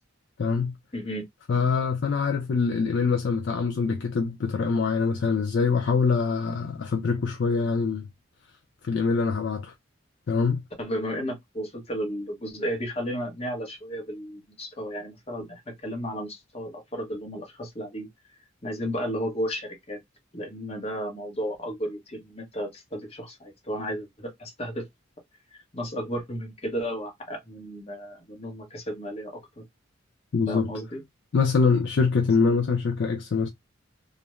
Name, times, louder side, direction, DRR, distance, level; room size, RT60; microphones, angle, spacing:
voice 1, 0.4-0.7 1.5-8.1 8.8-9.7 10.3-10.6 30.3-30.7 31.3-33.5, left 5 dB, 55° left, 0.4 m, -24 dB
voice 2, 0.9-1.2 10.8-18.1 18.6-20.0 20.3-24.8 25.5-29.6 30.5-31.0, equal, 30° left, 0.9 m, -33 dB
2.4 x 2.1 x 3.0 m
head